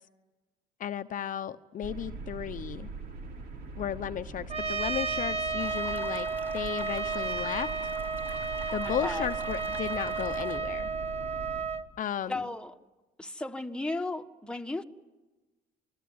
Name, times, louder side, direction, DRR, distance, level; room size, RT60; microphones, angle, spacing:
voice 1, 0.8-2.9 3.8-7.7 8.7-10.9 12.0-12.4, left 9 dB, 50° left, 0.9 m, -34 dB
sound 1, 1.8-11.6, right 3 dB, 70° right, 5.8 m, -42 dB
Trumpet, 4.5-11.8, right 4 dB, 35° right, 1.5 m, -32 dB
sound 2, 5.6-10.6, right 1 dB, 10° right, 3.5 m, -48 dB
voice 2, 8.8-9.3 12.3-12.7 13.2-14.8, left 2 dB, 5° left, 1.5 m, -35 dB
27.0 x 21.0 x 9.6 m
cardioid pair, 110°, 17 cm